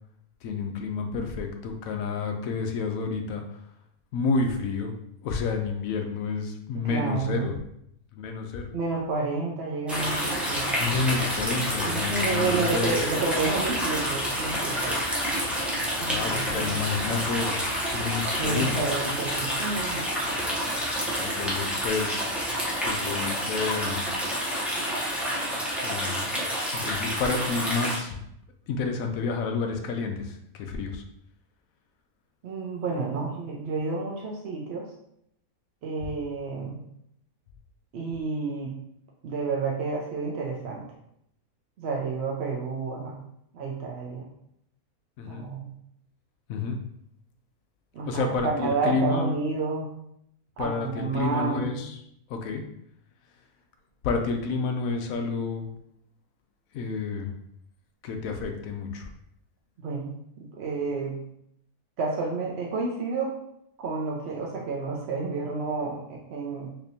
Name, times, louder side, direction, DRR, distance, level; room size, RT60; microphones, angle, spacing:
voice 1, 0.4-3.4 4.1-4.9 5.2-7.5 8.1-8.7 10.8-13.0 15.9-17.6 17.9-18.7 21.2-22.2 22.8-24.2 25.8-26.3 26.7-28.2 28.7-31.0 45.2-45.4 46.5-46.8 48.1-48.5 48.8-49.3 50.6-52.0 52.3-52.6 54.0-55.7 56.7-57.3 58.0-59.1, left 4 dB, 70° left, 4 dB, 1.0 m, -29 dB
voice 2, 6.7-7.5 8.7-10.7 11.8-15.0 16.0-16.8 18.4-20.0 32.4-34.9 35.8-36.8 37.9-38.8 39.2-40.9 41.8-43.2 43.5-44.3 45.3-45.7 47.9-49.9 50.6-51.7 59.8-61.2 62.0-63.4 63.8-66.7, right 4 dB, 60° right, -2 dB, 0.7 m, -30 dB
sound 1, 9.9-28.0, equal, ahead, 0.3 m, -28 dB
4.3 x 2.8 x 2.7 m, 0.74 s
omnidirectional pair, 1.6 m